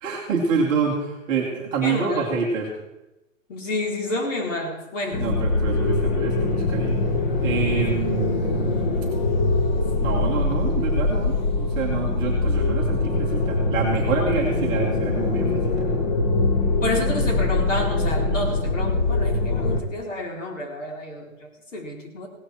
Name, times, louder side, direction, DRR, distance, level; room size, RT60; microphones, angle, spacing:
voice 1, 0.0-2.7 5.2-7.0 7.4-9.0 10.0-16.2, right 5 dB, 10° right, -4 dB, 1.1 m, -27 dB
voice 2, 1.8-2.3 3.5-5.3 16.8-22.3, left 1 dB, 65° left, 1 dB, 4.1 m, -29 dB
sound 1, 5.1-19.8, left 2 dB, 35° left, 1.1 m, -23 dB
17.0 x 13.0 x 4.4 m, 0.97 s
hypercardioid pair, 180°, 40 cm